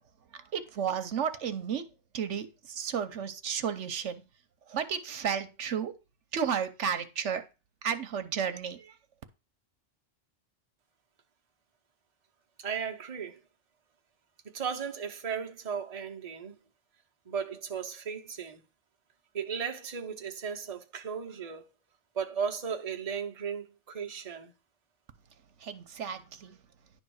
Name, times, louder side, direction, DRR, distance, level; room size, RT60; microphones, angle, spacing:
voice 1, 0.3-1.9 2.1-4.2 4.7-5.9 6.3-7.4 7.8-9.0 25.6-26.6, right 7 dB, 80° right, 1.1 m, -33 dB
voice 2, 12.6-13.4 14.4-16.6 17.3-18.6 19.3-21.6 22.1-24.5, right 6 dB, 35° right, 1.0 m, -36 dB
10.5 x 3.7 x 6.3 m
omnidirectional pair, 1.2 m